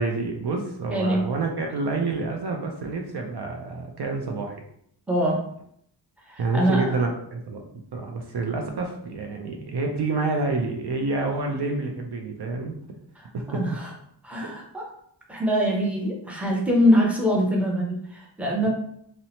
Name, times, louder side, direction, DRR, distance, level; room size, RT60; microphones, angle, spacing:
voice 1, 0.0-4.6 6.4-7.6 7.9-12.8 13.3-13.6 18.6-18.7, right 3 dB, 60° right, 2 dB, 0.5 m, -28 dB
voice 2, 0.9-1.2 5.1-5.4 6.3-7.0 13.2-13.9 14.2-14.8 15.3-18.7, equal, 5° right, -2 dB, 0.6 m, -23 dB
2.7 x 2.1 x 2.8 m, 0.70 s
wide cardioid pair, 75°, 46 cm